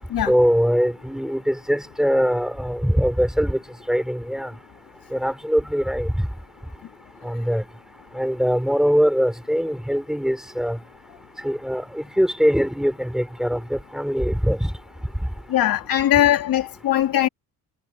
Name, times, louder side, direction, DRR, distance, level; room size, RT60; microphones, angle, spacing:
voice 1, 0.3-3.6 3.9-4.5 5.1-6.3 7.2-7.7 8.1-10.8 11.4-14.7, equal, ahead, 3.9 m, -22 dB
voice 2, 15.5-17.3, left 12 dB, 65° left, 2.6 m, -20 dB
cardioid pair, 90°, 38 cm